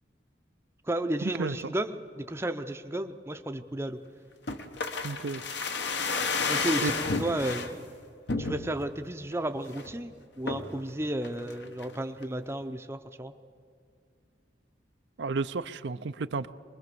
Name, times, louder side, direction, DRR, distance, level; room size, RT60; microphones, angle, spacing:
voice 1, 0.8-4.0 6.2-8.0 8.4-13.3, right 1 dB, 15° right, 8 dB, 0.6 m, -33 dB
sound 1, 4.5-7.7 8.3-8.9 9.3-9.4 9.7-10.0 10.5-10.8 11.2-11.9 12.2-12.3, left 4 dB, 70° left, 1.2 m, -31 dB
voice 2, 5.0-5.4 6.8-6.9 15.2-16.5, right 4 dB, 75° right, 12 dB, 0.5 m, -32 dB
23.5 x 20.5 x 6.8 m, 2.3 s
head